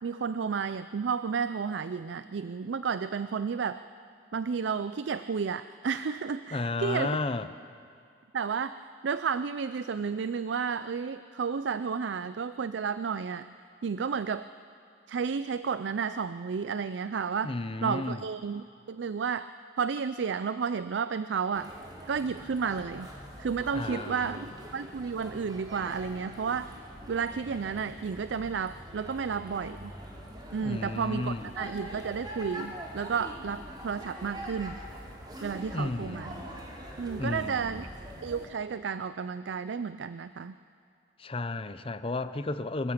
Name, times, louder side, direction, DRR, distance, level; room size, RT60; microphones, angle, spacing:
voice 1, 0.0-3.8 4.3-7.2 8.3-8.8 9.0-13.5 13.8-14.4 15.1-17.5 17.8-19.5 19.8-21.7 22.1-23.1 23.4-26.7 27.1-29.9 30.5-34.8 35.4-36.3 37.0-37.9 38.2-40.5, right 6 dB, 85° right, 13 dB, 0.4 m, -32 dB
voice 2, 6.5-7.5 17.4-18.3 23.7-24.5 30.6-31.7 35.7-36.5 37.2-37.8 41.2-42.9, left 2 dB, 30° left, 12 dB, 0.6 m, -33 dB
sound 1, 21.5-38.5, equal, 25° right, 3.2 m, -44 dB
25.0 x 14.5 x 7.3 m, 2.4 s
head